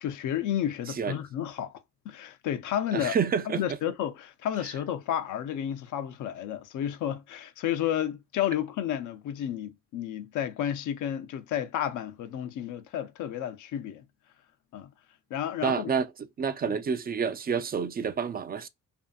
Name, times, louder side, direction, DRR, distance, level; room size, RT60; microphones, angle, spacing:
voice 1, 0.0-1.7 2.0-3.2 3.5-14.0 14.7-14.9 15.3-15.9 16.6-16.8, left 10 dB, 75° left, 0.6 m, -31 dB
voice 2, 0.9-1.2 2.9-3.6 15.6-16.1 16.4-18.7, right 6 dB, 30° right, 0.4 m, -28 dB
2.6 x 2.5 x 2.2 m
cardioid pair, 90°, 30 cm